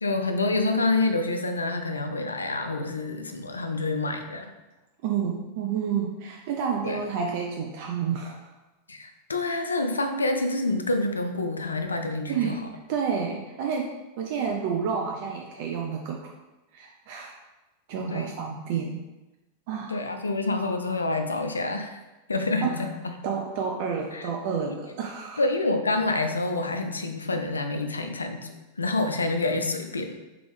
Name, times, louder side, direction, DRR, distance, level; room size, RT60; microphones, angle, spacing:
voice 1, 0.0-4.5 6.8-7.0 8.9-12.6 18.1-18.3 19.9-22.0 22.3-23.2 24.1-24.3 24.7-24.8 25.4-30.1, left 2 dB, 75° left, 6 dB, 0.4 m, -27 dB
voice 2, 5.0-8.5 12.3-16.2 16.7-17.3 17.9-19.0 19.7-20.0 22.6-22.8 23.2-25.4, right 6 dB, 50° right, 1 dB, 0.4 m, -30 dB
3.7 x 3.0 x 3.4 m, 1.1 s
figure-of-eight pair, 90°, 0 cm